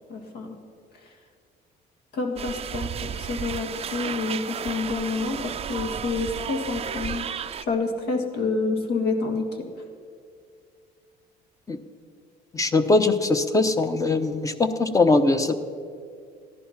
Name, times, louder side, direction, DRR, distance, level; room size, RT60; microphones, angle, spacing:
voice 1, 0.1-0.6 2.1-7.3 7.7-9.5, left 3 dB, 70° left, 4 dB, 1.9 m, -28 dB
sound 1, 2.4-7.6, right 8 dB, 35° right, 0.5 m, -33 dB
voice 2, 12.5-15.6, left 3 dB, 20° left, 9 dB, 0.8 m, -21 dB
15.0 x 11.0 x 5.8 m, 2.2 s
cardioid pair, 110°, 17 cm